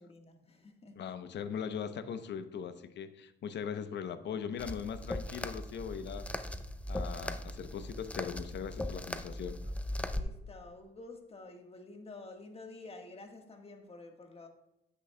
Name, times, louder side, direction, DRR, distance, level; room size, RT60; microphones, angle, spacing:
voice 1, 0.0-1.1 10.0-14.5, left 2 dB, 30° left, 1.4 m, -50 dB
voice 2, 1.0-6.5 6.9-9.6, left 7 dB, 60° left, 0.7 m, -40 dB
sound 1, 4.6-10.2, left 1 dB, 5° left, 0.5 m, -39 dB
10.0 x 8.2 x 2.2 m
cardioid pair, 90°, 20 cm